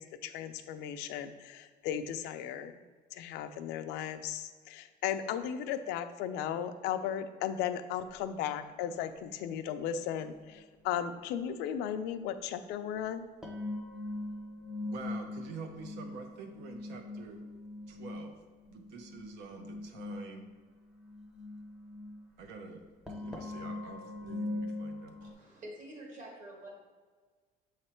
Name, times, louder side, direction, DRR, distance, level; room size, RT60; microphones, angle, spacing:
voice 1, 0.0-2.8 3.1-13.3, left 9 dB, 85° left, 9 dB, 0.5 m, -36 dB
sound 1, 10.2-10.3 13.4-25.3, left 2 dB, 5° right, 0.6 m, -42 dB
voice 2, 14.8-17.4 17.9-18.4 18.7-20.5 22.4-22.8 23.1-25.2, right 5 dB, 85° right, 5 dB, 0.8 m, -47 dB
voice 3, 25.2-26.7, right 1 dB, 50° right, -1 dB, 1.5 m, -47 dB
7.0 x 3.2 x 4.4 m, 1.5 s
cardioid pair, 170°, 17 cm